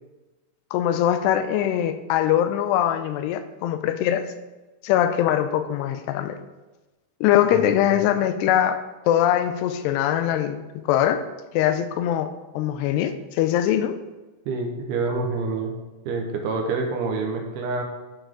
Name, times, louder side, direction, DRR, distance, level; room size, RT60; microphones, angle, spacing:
voice 1, 0.7-4.3 4.8-6.4 7.2-8.8 9.1-11.2 11.5-14.0, left 11 dB, 85° left, 9 dB, 2.7 m, -22 dB
voice 2, 14.5-15.7 16.1-17.8, right 3 dB, 75° right, 3 dB, 2.8 m, -27 dB
12.0 x 5.6 x 3.7 m, 1.1 s
omnidirectional pair, 4.8 m